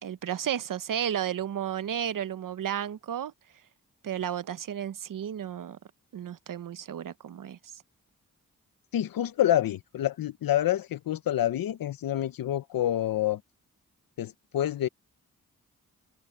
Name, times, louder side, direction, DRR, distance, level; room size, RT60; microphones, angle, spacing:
voice 1, 0.0-3.3 4.0-5.8 6.1-7.6, right 9 dB, 70° right, 1.0 m, -33 dB
voice 2, 8.9-13.4 14.2-14.9, left 12 dB, 85° left, 0.9 m, -27 dB
cardioid pair, 50°, 34 cm